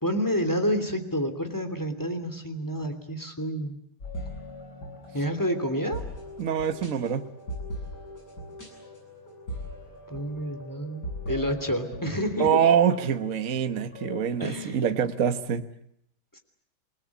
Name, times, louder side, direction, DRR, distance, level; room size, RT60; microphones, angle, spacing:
voice 1, 0.0-3.8 5.1-6.0 10.1-12.6 14.4-14.8 16.3-16.4, equal, 10° left, 6 dB, 2.9 m, -29 dB
sound 1, 4.0-14.2, left 1 dB, 55° left, 8.7 m, -40 dB
voice 2, 6.4-7.2 12.4-15.7, right 8 dB, 45° right, 8 dB, 1.4 m, -25 dB
27.5 x 20.0 x 8.5 m, 0.75 s
omnidirectional pair, 2.2 m